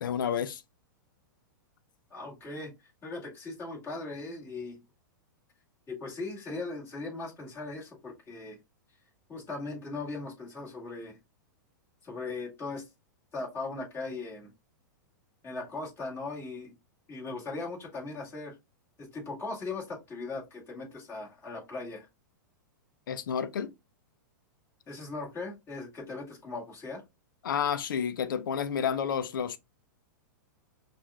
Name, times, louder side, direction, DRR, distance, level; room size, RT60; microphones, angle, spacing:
voice 1, 0.0-0.6 23.1-23.7 27.4-29.6, left 7 dB, 80° left, 0.5 m, -30 dB
voice 2, 2.1-4.8 5.9-8.6 9.3-11.2 12.0-12.8 13.3-14.5 15.4-16.7 17.1-18.6 19.0-22.1 24.9-27.0, left 3 dB, 20° left, 2.1 m, -39 dB
5.9 x 2.5 x 2.2 m
hypercardioid pair, 125°, 11 cm